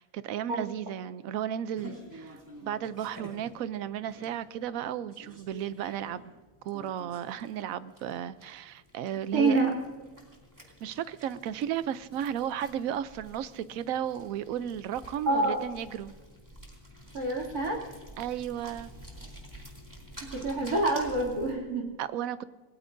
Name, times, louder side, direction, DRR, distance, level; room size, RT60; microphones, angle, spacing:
voice 1, 0.0-6.3 6.6-9.6 10.8-16.1 18.2-18.9 22.0-22.4, right 10 dB, 70° right, 14 dB, 1.0 m, -34 dB
sound 1, 1.8-21.5, equal, 10° right, 2.4 m, -50 dB
voice 2, 9.3-9.7 15.3-15.6 17.1-17.8 20.3-21.9, right 2 dB, 85° right, -2 dB, 3.2 m, -26 dB
27.5 x 17.5 x 2.6 m, 1.3 s
omnidirectional pair, 1.6 m